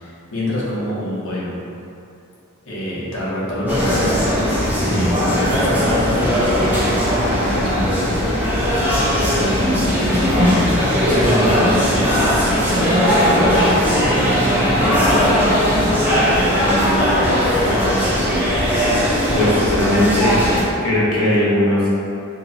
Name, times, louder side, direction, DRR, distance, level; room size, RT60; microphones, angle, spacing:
voice 1, 0.0-1.6 2.7-4.1 4.8-8.1 8.7-10.1 11.0-12.9 13.3-13.9 14.6-17.9, equal, 60° left, -8 dB, 1.0 m, -27 dB
sound 1, 3.7-20.6, equal, 10° right, 0.7 m, -18 dB
voice 2, 4.6-5.1 19.3-20.4 20.8-21.9, left 1 dB, 85° left, -7 dB, 1.0 m, -19 dB
3.0 x 2.6 x 4.1 m, 2.7 s
head